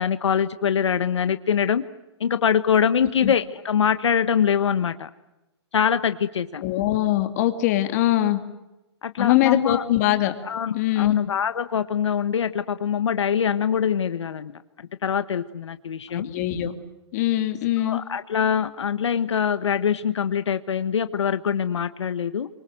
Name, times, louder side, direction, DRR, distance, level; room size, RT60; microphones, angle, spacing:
voice 1, 0.0-1.8 2.2-5.1 5.7-6.6 9.0-9.8 10.4-14.5 15.0-16.3 17.8-22.5, left 7 dB, 85° left, 12 dB, 1.4 m, -23 dB
voice 2, 6.6-8.4 9.2-10.3 10.7-11.2 16.1-16.8 17.1-18.0, left 14 dB, 35° left, 8 dB, 2.5 m, -22 dB
28.0 x 25.5 x 7.8 m, 0.99 s
hypercardioid pair, 160°, 14 cm